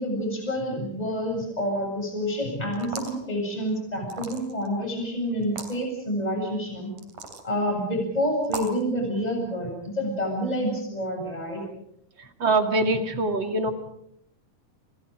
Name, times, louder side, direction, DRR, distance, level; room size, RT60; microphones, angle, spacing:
voice 1, 0.0-6.9 7.4-11.6, equal, 10° left, 2 dB, 7.8 m, -28 dB
sound 1, 2.7-3.2 4.1-4.7 5.4-5.7 7.0-7.5 8.4-8.8, right 4 dB, 80° right, 4.4 m, -36 dB
voice 2, 12.4-13.7, right 2 dB, 40° right, 6 dB, 2.9 m, -23 dB
29.0 x 28.5 x 5.1 m, 0.71 s
omnidirectional pair, 3.4 m